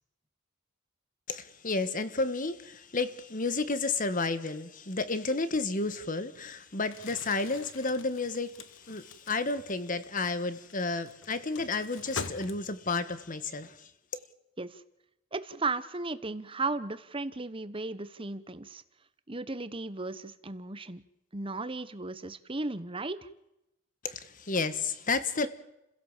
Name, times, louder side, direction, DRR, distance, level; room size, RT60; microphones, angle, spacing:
voice 1, 1.3-13.9 24.0-25.5, left 3 dB, 40° left, 1.6 m, -31 dB
Crumpling crinkling, 6.8-13.0, left 4 dB, 75° left, 1.5 m, -45 dB
voice 2, 15.3-18.8 19.3-21.0 21.3-23.3, right 3 dB, 25° right, 1.1 m, -35 dB
30.0 x 16.5 x 7.5 m
head